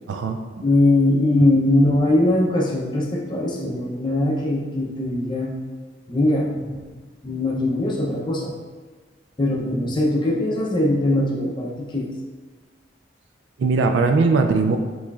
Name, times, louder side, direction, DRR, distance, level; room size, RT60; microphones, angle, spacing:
voice 1, 0.1-0.6 13.6-14.8, right 4 dB, 80° right, 5 dB, 0.3 m, -20 dB
voice 2, 0.6-5.5 6.1-7.0 7.2-8.5 9.4-12.1, left 1 dB, 25° left, -2 dB, 0.5 m, -21 dB
6.2 x 3.1 x 2.3 m, 1.4 s
head